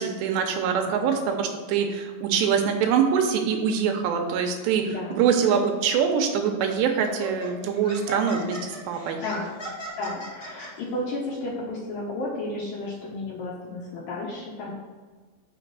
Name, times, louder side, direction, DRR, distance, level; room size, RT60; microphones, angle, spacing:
voice 1, 0.0-4.8 5.1-9.2, right 7 dB, 80° right, 4 dB, 2.8 m, -24 dB
voice 2, 0.8-1.1 4.9-5.2 9.1-9.6 10.0-14.7, left 2 dB, 70° left, -4 dB, 2.2 m, -33 dB
Laughter, 6.2-6.4 7.0-10.7, right 1 dB, 90° left, 0.5 m, -37 dB
6.4 x 5.1 x 6.0 m, 1.4 s
omnidirectional pair, 5.2 m